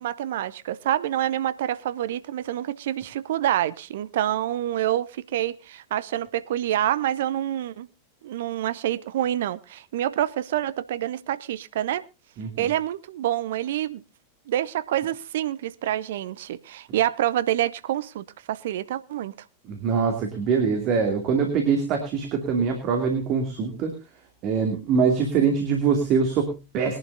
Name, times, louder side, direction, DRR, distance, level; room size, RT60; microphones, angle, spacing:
voice 1, 0.0-7.9 8.2-12.0 12.6-14.0 14.5-19.3, right 12 dB, 55° right, 0.6 m, -27 dB
voice 2, 12.4-12.7 19.7-23.9 24.4-27.0, right 5 dB, 40° right, 2.6 m, -23 dB
21.5 x 11.0 x 2.7 m
figure-of-eight pair, 90°, 0 cm